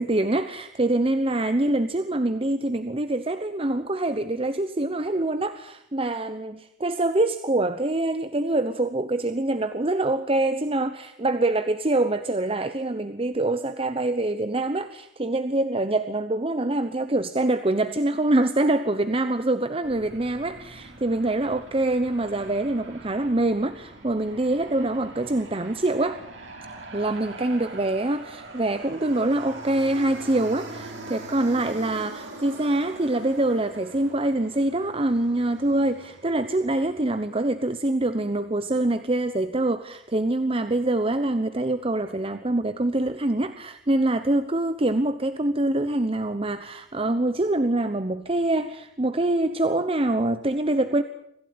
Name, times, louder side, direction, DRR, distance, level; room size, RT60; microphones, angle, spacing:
voice 1, 0.0-26.2 26.9-51.0, right 2 dB, 30° right, 11 dB, 1.0 m, -25 dB
Aircraft, 19.8-37.3, right 2 dB, 80° right, 6.1 m, -43 dB
25.5 x 15.5 x 9.9 m, 0.75 s
head